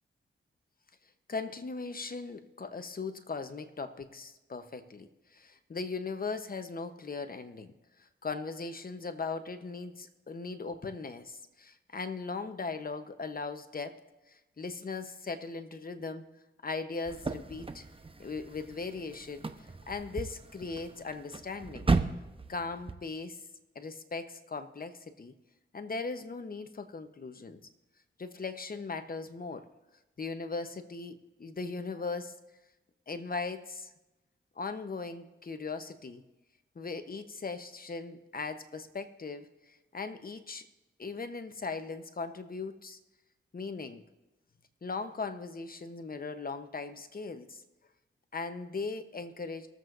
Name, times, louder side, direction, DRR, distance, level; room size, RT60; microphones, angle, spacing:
voice 1, 1.3-7.7 8.0-16.3 16.6-17.8 18.2-19.5 19.9-21.9 22.5-23.4 23.7-25.3 25.7-27.6 28.2-29.7 30.2-32.4 33.1-33.9 34.6-36.2 36.7-40.7 41.0-43.0 43.5-44.0 44.8-47.6 48.3-49.7, left 4 dB, 45° left, 9 dB, 0.9 m, -39 dB
sound 1, 17.1-22.9, right 3 dB, 25° right, 0.8 m, -35 dB
23.0 x 7.8 x 2.6 m, 1.0 s
cardioid pair, 60°, 21 cm